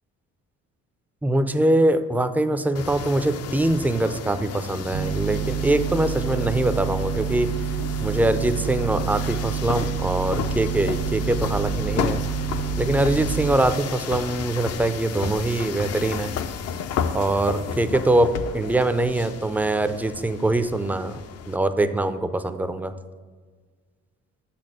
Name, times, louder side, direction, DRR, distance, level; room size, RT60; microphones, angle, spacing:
voice 1, 1.2-7.5 8.0-12.2 12.8-16.3 17.1-21.2 21.5-22.9, right 2 dB, 5° right, 10 dB, 0.3 m, -23 dB
sound 1, 2.7-21.6, left 7 dB, 55° left, 0.5 m, -33 dB
sound 2, 4.9-13.6, right 8 dB, 80° right, 0.7 m, -28 dB
6.1 x 4.3 x 6.1 m, 1.5 s
cardioid pair, 90°, 30 cm